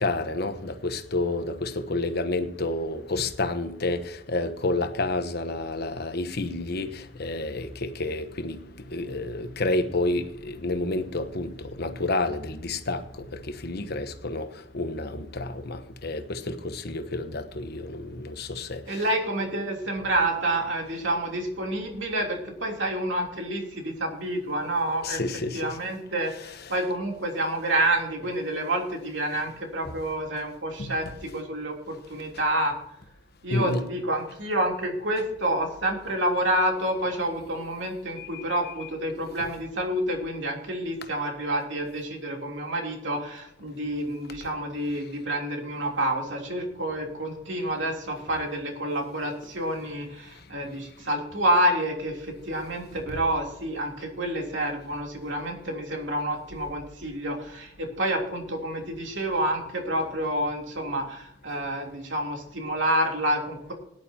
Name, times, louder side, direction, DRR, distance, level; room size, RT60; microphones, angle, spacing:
voice 1, 0.0-19.1 25.0-25.8 26.4-26.7 29.9-30.0 30.8-31.1 33.5-33.9 38.2-38.9 53.1-53.2, left 2 dB, 55° left, 1.1 m, -30 dB
voice 2, 18.9-25.2 25.5-32.7 33.4-63.7, right 1 dB, 75° right, 3.3 m, -28 dB
18.5 x 11.0 x 2.9 m
head